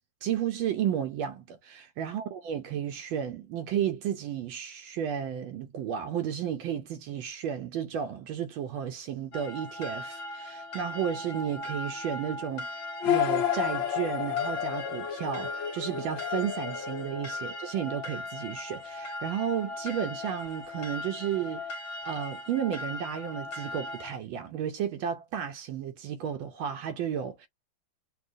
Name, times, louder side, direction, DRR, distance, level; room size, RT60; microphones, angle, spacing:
voice 1, 0.2-21.6 22.0-27.5, right 9 dB, 80° right, 1.4 m, -33 dB
sound 1, 9.3-24.2, left 2 dB, 50° left, 1.5 m, -39 dB
sound 2, 13.0-17.8, left 10 dB, 75° left, 1.4 m, -31 dB
4.4 x 2.6 x 2.5 m
omnidirectional pair, 2.3 m